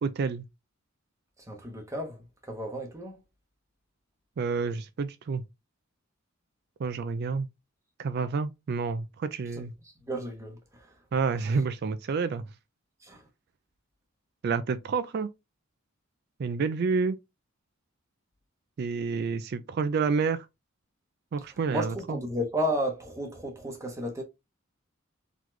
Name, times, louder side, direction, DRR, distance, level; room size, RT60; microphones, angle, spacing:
voice 1, 0.0-0.5 4.4-5.4 6.8-7.5 8.0-9.7 11.1-12.4 14.4-15.3 16.4-17.2 18.8-20.5 21.3-22.2, right 5 dB, 55° right, 0.3 m, -29 dB
voice 2, 1.5-3.2 9.6-10.9 13.0-13.2 21.7-24.2, equal, 15° right, 1.0 m, -33 dB
4.0 x 3.0 x 3.1 m
head